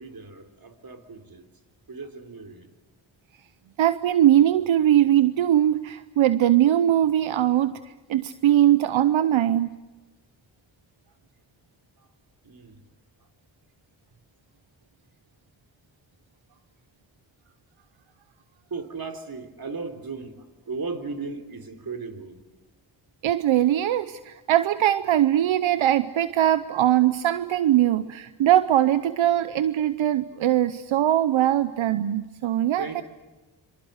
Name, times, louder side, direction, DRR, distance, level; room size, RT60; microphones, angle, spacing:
voice 1, 0.0-1.5 1.9-2.7 12.4-12.8 18.7-22.4 32.8-33.0, right 4 dB, 50° right, 7 dB, 3.4 m, -36 dB
voice 2, 3.8-9.7 23.2-33.0, right 12 dB, 80° right, 13 dB, 0.8 m, -21 dB
26.0 x 24.5 x 8.1 m, 1.2 s
cardioid pair, 50°, 47 cm